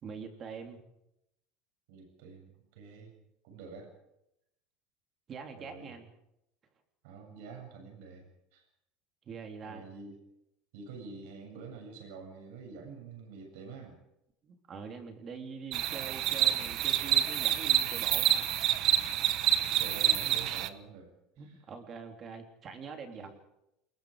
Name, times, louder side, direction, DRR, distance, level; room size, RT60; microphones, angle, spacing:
voice 1, 0.0-0.8 5.3-6.1 9.2-9.8 14.4-18.5 21.4-23.3, right 5 dB, 25° right, 5 dB, 3.5 m, -44 dB
voice 2, 1.9-3.2 3.4-3.9 5.6-5.9 7.0-8.6 9.6-10.2 10.7-14.0 19.5-21.1 21.4-21.6 23.2-23.3, right 4 dB, 75° right, 3 dB, 7.9 m, -47 dB
sound 1, 15.7-20.7, right 12 dB, 45° right, 1.3 m, -28 dB
28.5 x 21.5 x 5.1 m, 0.82 s
cardioid pair, 170°, 0 cm